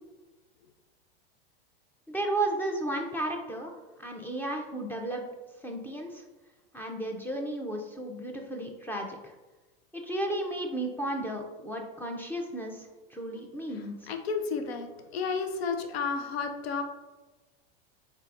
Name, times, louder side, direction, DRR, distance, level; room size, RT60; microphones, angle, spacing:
voice 1, 2.1-3.7 4.0-5.2 5.6-6.2 6.7-9.3 9.9-14.1, right 1 dB, 5° left, 2 dB, 0.4 m, -34 dB
voice 2, 14.1-14.9 15.1-16.8, left 5 dB, 90° left, 6 dB, 0.6 m, -31 dB
4.5 x 3.3 x 2.4 m, 1.2 s
hypercardioid pair, 115°, 30 cm